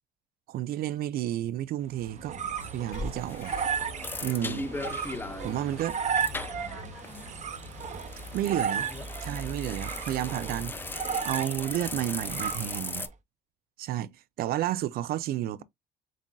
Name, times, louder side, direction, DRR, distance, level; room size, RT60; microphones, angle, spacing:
voice 1, 0.5-2.4 2.7-3.5 4.2-4.7 5.4-6.0 8.3-8.8 9.2-10.8 11.2-13.1 13.8-14.1 14.4-15.6, right 13 dB, 65° right, 0.4 m, -31 dB
sound 1, 1.9-13.1, right 6 dB, 45° right, 0.8 m, -35 dB
sound 2, 2.6-13.1, left 2 dB, 10° left, 0.4 m, -38 dB
sound 3, 2.9-10.0, left 4 dB, 70° left, 1.9 m, -50 dB
voice 2, 6.2-7.3 8.3-8.9 15.2-15.6, left 2 dB, 35° left, 3.2 m, -51 dB
7.2 x 2.5 x 2.2 m
cardioid pair, 110°, 17 cm